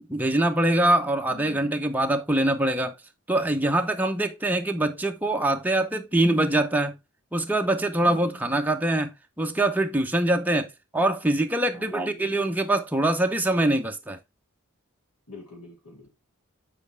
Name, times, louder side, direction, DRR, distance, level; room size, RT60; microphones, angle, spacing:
voice 1, 0.1-2.9 3.3-6.9 7.3-9.1 9.4-14.2, right 1 dB, 10° right, 0.7 m, -24 dB
voice 2, 1.3-1.7 8.0-8.5 11.7-12.3 15.3-16.1, left 2 dB, 90° left, 3.2 m, -45 dB
7.7 x 4.8 x 3.3 m
head